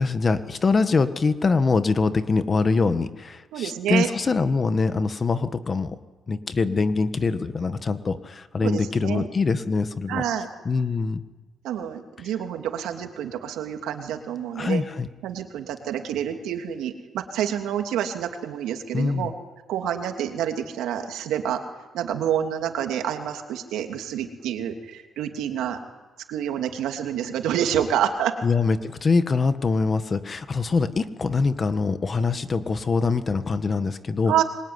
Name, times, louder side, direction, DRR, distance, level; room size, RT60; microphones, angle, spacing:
voice 1, 0.0-5.9 6.3-10.2 10.6-11.2 14.5-15.1 18.9-19.3 28.4-34.3, left 4 dB, 35° left, 11 dB, 1.6 m, -23 dB
voice 2, 3.5-4.1 8.6-9.3 10.1-10.5 11.6-14.8 15.2-19.3 19.7-21.6 21.9-25.8 26.3-28.3 34.3-34.4, right 10 dB, 85° right, 5 dB, 2.9 m, -28 dB
26.0 x 22.5 x 9.8 m, 1.2 s
cardioid pair, 90°, 0 cm